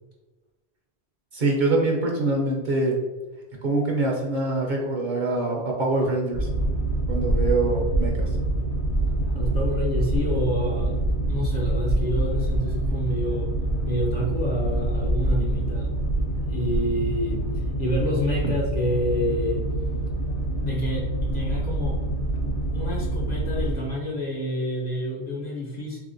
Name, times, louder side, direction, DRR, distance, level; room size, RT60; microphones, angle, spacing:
voice 1, 1.3-3.0 3.6-6.5 7.1-8.2, right 2 dB, 55° right, -1 dB, 0.7 m, -24 dB
Boat Water vehicle, 6.3-23.8, right 1 dB, 75° left, 0.9 m, -26 dB
voice 2, 9.3-11.0 11.3-13.5 13.8-16.0 16.4-19.7 20.6-22.0 22.7-26.0, equal, 50° left, -2 dB, 0.5 m, -28 dB
3.4 x 2.9 x 2.5 m, 1.2 s
omnidirectional pair, 1.1 m